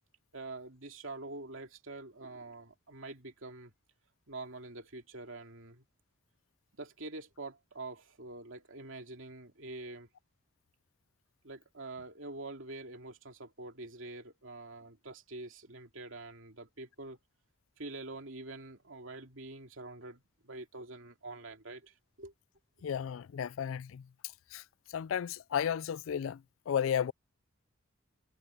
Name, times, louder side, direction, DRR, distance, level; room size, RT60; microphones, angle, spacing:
voice 1, 0.3-3.7 4.3-5.8 6.8-10.1 11.4-17.2 17.8-22.3, right 2 dB, 70° right, 2.7 m, -46 dB
voice 2, 22.8-24.1 24.5-24.6 24.9-27.1, left 8 dB, 75° left, 0.3 m, -33 dB
head